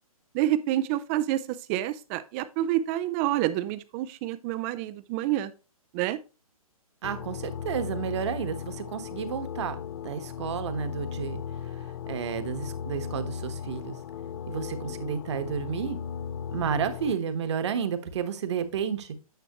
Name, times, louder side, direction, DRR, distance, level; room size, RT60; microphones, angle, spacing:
voice 1, 0.3-5.5 5.9-6.2, right 13 dB, 20° right, 0.5 m, -28 dB
sound 1, 7.0-17.1, left 8 dB, 45° left, 0.6 m, -37 dB
voice 2, 7.0-9.8 10.0-11.4 12.1-14.0 14.5-16.0 16.5-19.1, right 7 dB, 50° right, 1.3 m, -31 dB
9.3 x 6.1 x 3.0 m
hypercardioid pair, 135°, 19 cm